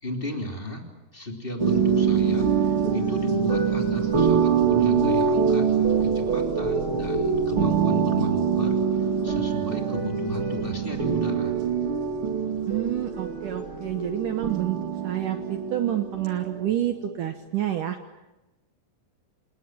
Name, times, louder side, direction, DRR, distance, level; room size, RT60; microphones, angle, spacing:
voice 1, 0.0-0.8 1.1-5.7 6.0-11.6, left 2 dB, 15° left, 2 dB, 2.3 m, -34 dB
sound 1, 1.6-16.7, right 6 dB, 35° right, 2.4 m, -24 dB
voice 2, 12.7-14.8 15.0-18.0, right 12 dB, 85° right, 7 dB, 1.8 m, -28 dB
27.5 x 20.0 x 9.2 m, 1.0 s
omnidirectional pair, 5.4 m